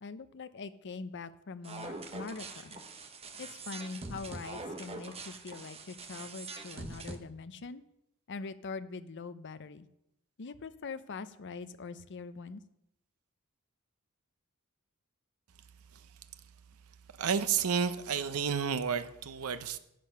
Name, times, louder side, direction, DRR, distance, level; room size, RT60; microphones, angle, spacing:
voice 1, 0.0-2.8 3.4-7.8 8.3-9.9 10.4-12.6, left 4 dB, 55° left, 13 dB, 0.6 m, -43 dB
sound 1, 1.6-7.1, right 3 dB, 25° right, 1.0 m, -44 dB
voice 2, 17.2-19.8, right 6 dB, 70° right, 12 dB, 0.7 m, -31 dB
10.5 x 8.4 x 5.7 m, 0.82 s
head